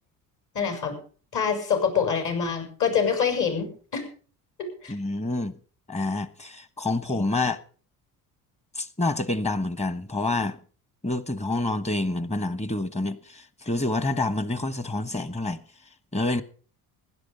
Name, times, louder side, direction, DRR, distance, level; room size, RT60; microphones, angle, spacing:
voice 1, 0.5-1.0 1.3-3.7 3.9-4.0 4.6-4.9 7.1-7.2, left 6 dB, 50° left, 7.0 m, -25 dB
voice 2, 4.9-5.6 5.9-7.6 8.7-10.6 11.0-15.6 16.1-16.4, left 2 dB, 15° left, 1.3 m, -27 dB
16.0 x 11.5 x 5.4 m
cardioid pair, 105°, 38 cm